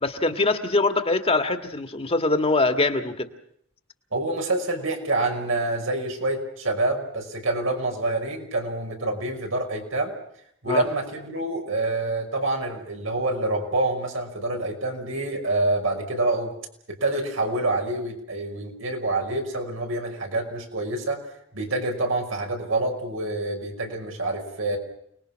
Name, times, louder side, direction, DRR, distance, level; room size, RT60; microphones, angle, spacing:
voice 1, 0.0-3.3 10.7-10.8, left 2 dB, 30° left, 7 dB, 1.7 m, -23 dB
voice 2, 4.1-10.1 10.6-16.5 16.9-21.2 21.5-24.8, right 2 dB, 85° right, 2 dB, 5.9 m, -27 dB
29.5 x 20.5 x 6.3 m, 0.70 s
head